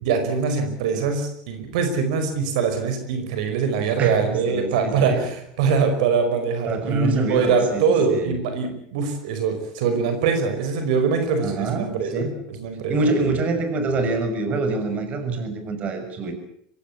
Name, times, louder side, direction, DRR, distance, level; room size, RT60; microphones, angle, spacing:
voice 1, 0.0-13.1, right 5 dB, 80° right, 7 dB, 5.0 m, -23 dB
voice 2, 4.0-5.2 6.7-8.3 11.4-12.3 12.9-16.3, right 3 dB, 40° right, 7 dB, 6.3 m, -25 dB
24.5 x 18.0 x 8.6 m, 0.70 s
supercardioid pair, 125°, 4 cm